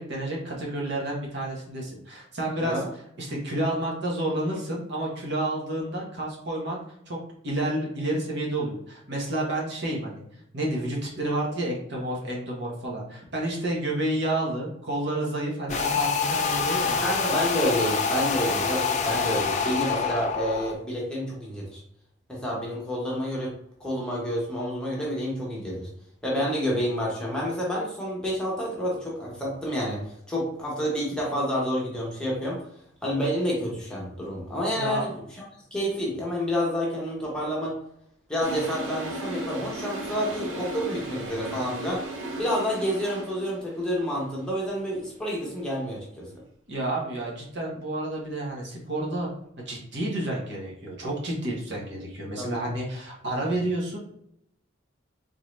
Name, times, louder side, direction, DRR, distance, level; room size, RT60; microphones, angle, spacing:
voice 1, 0.0-2.8 3.2-6.8 7.1-7.2 7.4-10.2 10.5-17.1 34.7-35.1 46.7-49.3 49.6-54.0, right 1 dB, 60° right, -3 dB, 1.1 m, -30 dB
sound 1, 15.7-20.7, left 5 dB, 35° left, 0.4 m, -26 dB
voice 2, 17.0-21.8 22.3-23.5 23.8-25.9 26.2-32.6 33.0-35.4 35.7-37.7 38.3-42.0 42.4-46.3 52.4-52.7, equal, 5° left, -5 dB, 1.0 m, -29 dB
Toilet flush, 38.4-43.6, right 1 dB, 75° right, 0.9 m, -35 dB
3.8 x 2.7 x 3.2 m, 0.73 s
head